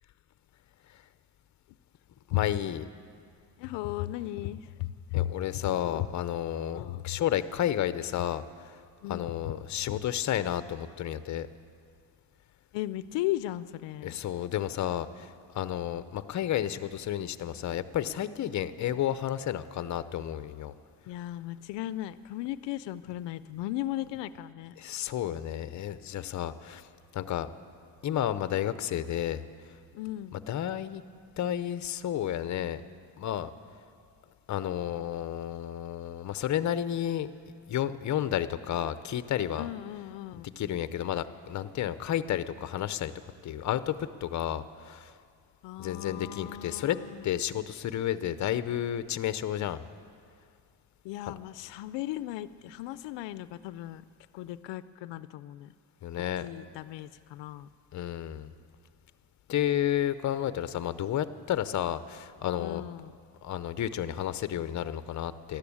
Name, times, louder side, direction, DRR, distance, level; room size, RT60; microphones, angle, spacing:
voice 1, 2.3-2.8 5.1-8.8 9.1-11.5 14.0-20.7 24.8-27.5 28.0-29.8 30.3-31.0 31.4-32.8 33.2-33.5 34.5-37.3 37.7-39.7 40.6-43.1 43.4-45.1 45.8-47.0 47.2-49.8 51.3-51.4 56.0-56.5 57.9-58.5 59.5-62.8 63.4-65.6, left 11 dB, 45° left, 13 dB, 0.6 m, -31 dB
voice 2, 3.6-6.1 6.7-7.3 9.0-9.6 9.9-10.0 12.7-14.2 21.1-24.8 29.9-30.4 39.6-40.5 45.6-47.3 51.0-54.1 54.3-55.7 56.4-57.7 62.6-63.2, left 15 dB, 85° left, 15 dB, 0.5 m, -36 dB
13.5 x 11.5 x 8.6 m, 2.2 s
cardioid pair, 120°, 42 cm